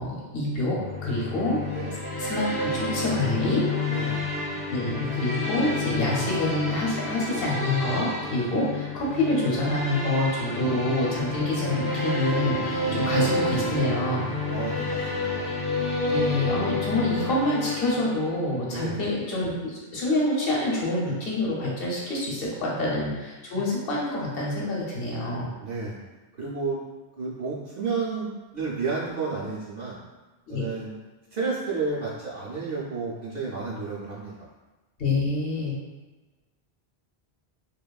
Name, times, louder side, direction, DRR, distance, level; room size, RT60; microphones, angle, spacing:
voice 1, 0.0-1.6 2.2-3.6 4.7-14.3 16.1-25.5 30.5-30.6 35.0-35.7, left 2 dB, 65° left, -4 dB, 0.9 m, -27 dB
sound 1, 0.8-18.5, left 2 dB, 20° left, 0.4 m, -29 dB
voice 2, 3.9-4.2 10.4-10.7 12.8-13.2 14.5-15.5 18.7-19.0 22.5-22.9 25.6-26.0 26.4-26.8 27.2-28.3 28.5-30.0 30.5-30.9 31.3-34.5, right 4 dB, 55° right, -7 dB, 0.5 m, -32 dB
2.9 x 2.2 x 2.2 m, 1.2 s
omnidirectional pair, 1.1 m